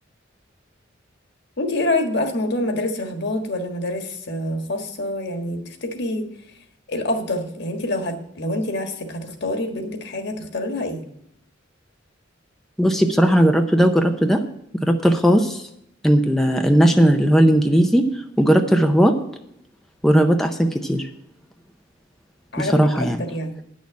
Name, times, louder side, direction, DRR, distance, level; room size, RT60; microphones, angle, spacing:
voice 1, 1.6-6.2 6.9-11.0 18.4-18.6 22.5-22.9 23.2-23.6, left 1 dB, 60° left, 5 dB, 1.6 m, -26 dB
voice 2, 12.8-14.4 14.8-15.6 16.0-18.1 18.4-19.1 20.0-21.1 22.6-23.2, equal, ahead, 4 dB, 0.6 m, -17 dB
9.8 x 6.4 x 8.3 m, 0.75 s
head